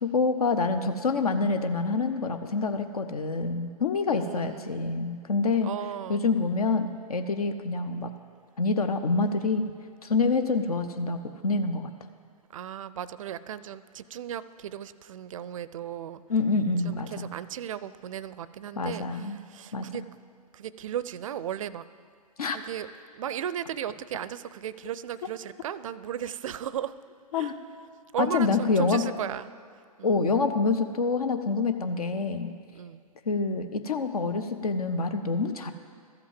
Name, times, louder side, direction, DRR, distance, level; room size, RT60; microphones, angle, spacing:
voice 1, 0.0-5.7 6.1-8.1 8.6-9.6 10.0-11.9 16.3-17.3 18.8-19.4 19.7-19.8 22.4-22.6 27.3-27.5 28.2-29.0 30.0-32.5 33.3-35.7, left 4 dB, 70° left, 8 dB, 0.7 m, -26 dB
voice 2, 4.1-4.7 5.6-6.2 12.5-16.2 16.8-20.0 20.5-21.8 22.5-27.0 27.3-27.5 28.1-29.5 30.0-30.2 32.7-33.0, right 10 dB, 60° right, 16 dB, 0.4 m, -36 dB
13.5 x 5.9 x 7.6 m, 2.2 s
figure-of-eight pair, 110°, 20 cm